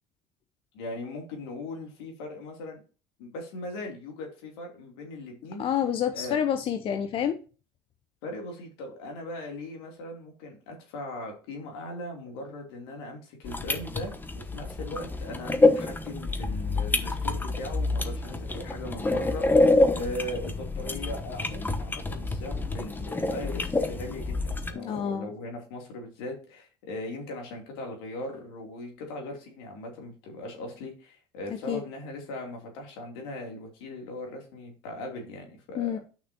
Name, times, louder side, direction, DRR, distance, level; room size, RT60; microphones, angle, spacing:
voice 1, 0.7-2.8 3.2-5.6 6.1-6.4 8.2-35.9, left 1 dB, 80° left, 1 dB, 2.8 m, -39 dB
voice 2, 5.6-7.4 24.7-25.3 31.5-31.8 35.8-36.0, left 9 dB, 45° left, 8 dB, 0.8 m, -28 dB
sound 1, 13.4-24.7, left 2 dB, 15° left, 1.1 m, -27 dB
8.9 x 6.0 x 2.8 m, 0.35 s
hypercardioid pair, 80°, 13 cm